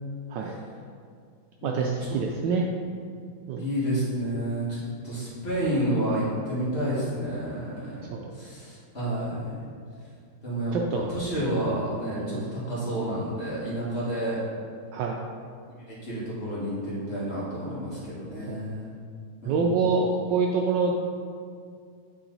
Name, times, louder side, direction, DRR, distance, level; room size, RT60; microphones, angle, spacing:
voice 1, 1.6-2.7 3.5-3.7 8.0-8.3 10.7-11.1 12.1-12.4 14.9-15.2 18.5-18.6 19.4-20.9, right 4 dB, 75° right, 0 dB, 1.1 m, -26 dB
voice 2, 3.6-8.1 8.4-9.6 10.4-14.4 15.9-18.9 19.4-19.6, right 1 dB, 30° left, -9 dB, 1.9 m, -30 dB
8.7 x 3.9 x 3.9 m, 2.2 s
omnidirectional pair, 2.2 m